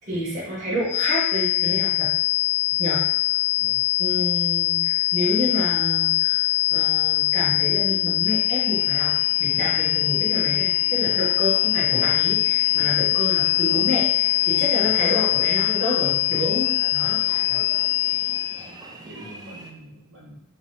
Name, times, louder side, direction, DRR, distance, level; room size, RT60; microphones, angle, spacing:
voice 1, 0.1-2.1 2.8-3.0 4.0-9.1 9.4-17.2, equal, 35° right, -9 dB, 1.0 m, -29 dB
sound 1, 0.9-18.6, left 18 dB, 85° left, 0.4 m, -22 dB
sound 2, 8.2-19.7, right 2 dB, 20° right, 0.3 m, -43 dB
voice 2, 14.5-15.4 16.3-17.6 18.6-20.4, equal, 60° right, -7 dB, 1.3 m, -45 dB
3.0 x 2.7 x 2.8 m, 0.75 s
head